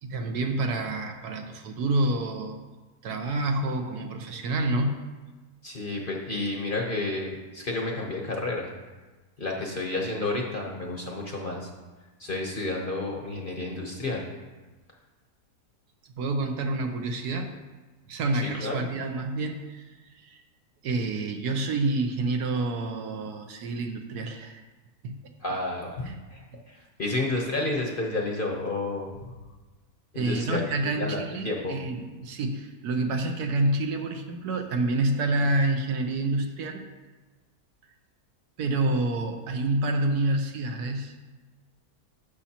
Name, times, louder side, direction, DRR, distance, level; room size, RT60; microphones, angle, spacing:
voice 1, 0.0-2.6 3.0-5.0 16.2-17.5 18.0-19.9 20.2-20.4 20.8-24.6 25.0-25.1 26.0-26.2 26.5-26.6 30.1-36.8 38.6-41.1, right 2 dB, 75° right, 4 dB, 1.3 m, -28 dB
voice 2, 5.6-8.7 9.4-11.7 12.2-14.3 18.4-18.9 25.4-29.3 30.1-30.6 31.0-31.8, left 2 dB, 40° left, 0 dB, 0.9 m, -31 dB
11.5 x 7.2 x 2.9 m, 1.2 s
omnidirectional pair, 1.7 m